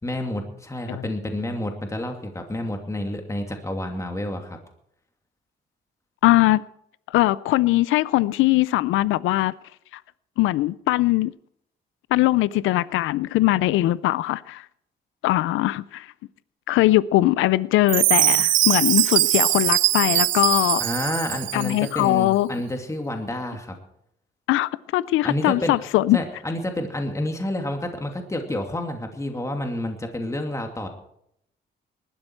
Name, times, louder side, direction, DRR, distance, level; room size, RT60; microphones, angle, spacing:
voice 1, 0.0-4.6 20.8-23.8 25.2-25.8 26.1-30.9, left 1 dB, 15° left, 2.4 m, -29 dB
voice 2, 6.2-6.6 7.1-9.5 9.9-10.0 10.4-11.3 12.1-14.7 15.2-16.1 16.7-20.8 21.5-22.5 24.5-26.2, left 16 dB, 90° left, 0.5 m, -21 dB
Chime, 17.9-21.9, right 15 dB, 75° right, 0.5 m, -21 dB
19.5 x 12.5 x 4.6 m
cardioid pair, 90°, 20 cm